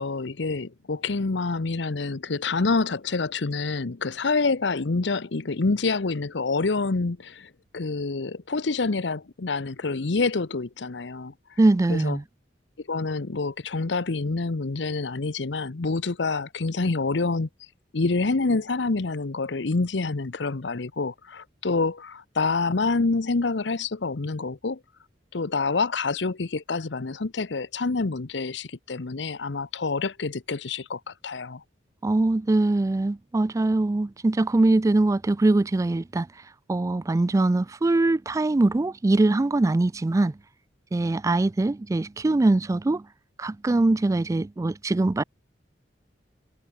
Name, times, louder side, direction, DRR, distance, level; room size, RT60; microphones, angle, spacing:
voice 1, 0.0-11.3 11.9-12.2 12.9-17.5 17.9-24.8 25.3-31.6, left 3 dB, 70° left, 0.8 m, -27 dB
voice 2, 11.6-12.2 32.0-36.3 36.7-40.3 40.9-43.0 43.4-45.2, right 2 dB, 20° right, 0.3 m, -22 dB
head